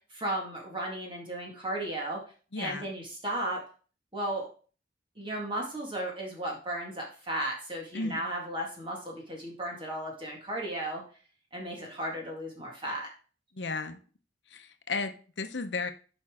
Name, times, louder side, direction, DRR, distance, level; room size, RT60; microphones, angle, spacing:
voice 1, 0.1-2.2 2.6-3.6 4.1-4.5 5.2-11.0 11.5-13.1, right 1 dB, 30° right, -2 dB, 2.0 m, -35 dB
voice 2, 2.5-2.9 7.9-8.2 13.5-14.0 14.5-15.9, left 3 dB, 70° left, 8 dB, 0.9 m, -34 dB
9.0 x 5.4 x 3.7 m, 0.38 s
head